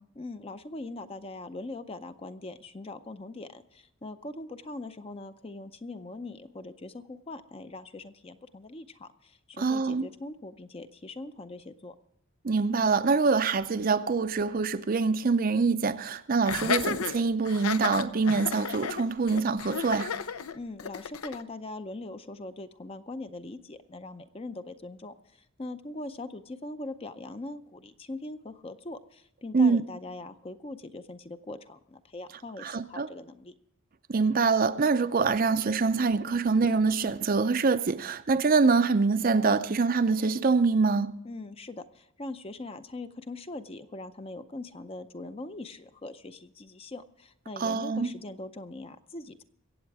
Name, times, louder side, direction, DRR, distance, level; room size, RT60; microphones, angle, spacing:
voice 1, 0.2-11.9 20.5-33.5 41.2-49.4, left 2 dB, 25° left, 0.5 m, -41 dB
voice 2, 9.6-10.1 12.4-20.1 29.5-29.8 32.6-33.1 34.1-41.2 47.6-48.1, right 4 dB, 40° right, 0.5 m, -25 dB
Laughter, 16.4-21.4, left 6 dB, 80° left, 0.6 m, -33 dB
23.0 x 8.2 x 4.7 m
head